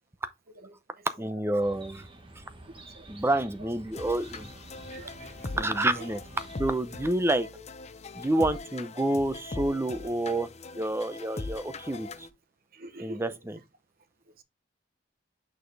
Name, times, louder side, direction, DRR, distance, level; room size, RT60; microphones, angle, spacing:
voice 1, 1.2-2.1 3.1-4.5 5.5-6.2 6.6-7.5 8.1-10.5 10.7-12.3 13.0-13.6, right 1 dB, 15° right, 0.6 m, -28 dB
Chirp tweet, 1.6-6.6, right 1 dB, 30° right, 1.3 m, -49 dB
sound 1, 3.9-12.3, left 3 dB, 35° left, 0.6 m, -41 dB
voice 2, 4.9-5.6 6.0-6.1 12.7-13.2, right 1 dB, 55° right, 0.9 m, -44 dB
6.4 x 4.8 x 3.3 m
head